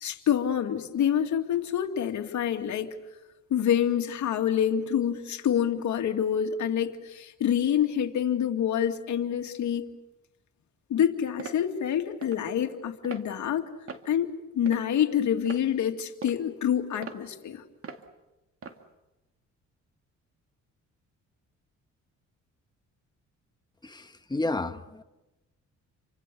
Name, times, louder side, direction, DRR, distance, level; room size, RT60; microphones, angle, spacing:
voice 1, 0.0-2.9 3.5-9.9 10.9-13.7 14.1-17.6, left 9 dB, 70° left, 2.4 m, -27 dB
sound 1, 11.4-11.6 12.2-12.4 13.0-13.3 13.9-14.1 14.7-15.0 15.5-15.6 16.2-16.4 17.0-17.2 17.8-18.0 18.6-18.8, right 5 dB, 45° right, 2.4 m, -41 dB
voice 2, 23.8-25.0, left 2 dB, 15° left, 1.5 m, -31 dB
30.0 x 25.0 x 6.9 m
cardioid pair, 90°, 30 cm